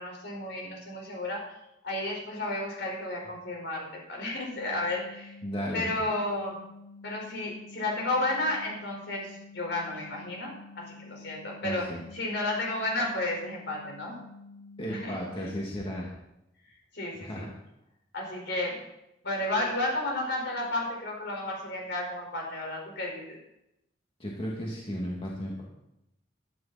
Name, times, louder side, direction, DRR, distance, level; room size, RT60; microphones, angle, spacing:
voice 1, 0.0-1.5 1.8-5.4 5.7-6.6 7.0-14.2 14.9-15.5 16.9-17.4 18.1-18.8 19.2-23.4, left 2 dB, 60° left, -1 dB, 5.3 m, -32 dB
sound 1, 4.5-15.0, left 3 dB, 45° left, 3.1 m, -49 dB
voice 2, 5.4-5.8 11.6-12.0 14.8-16.1 17.2-17.5 24.2-25.6, equal, 30° left, -4 dB, 2.6 m, -34 dB
16.5 x 12.5 x 4.4 m, 0.85 s
head